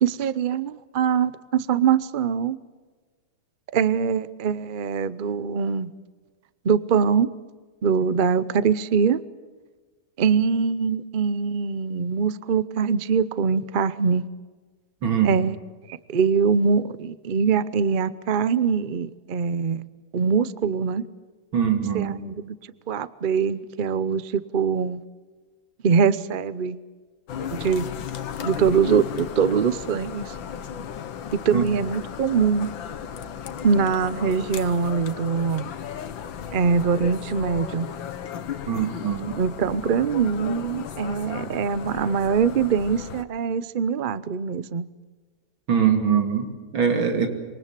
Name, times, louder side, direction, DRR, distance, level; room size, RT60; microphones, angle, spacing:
voice 1, 0.0-2.6 3.7-5.9 6.6-7.3 7.8-9.2 10.2-14.2 15.2-15.6 16.1-19.8 20.1-21.0 21.9-22.6 22.9-25.0 25.8-26.8 27.5-27.9 28.4-30.3 31.3-32.7 33.6-35.7 36.5-37.9 39.4-44.8, right 6 dB, 60° right, 16 dB, 0.5 m, -23 dB
voice 2, 15.0-15.4 21.5-22.1 31.5-31.6 38.7-39.3 45.7-47.3, right 7 dB, 90° right, 5 dB, 3.5 m, -22 dB
sound 1, 27.3-43.2, left 8 dB, 75° left, 1.9 m, -35 dB
26.5 x 23.5 x 7.6 m, 1.4 s
omnidirectional pair, 2.1 m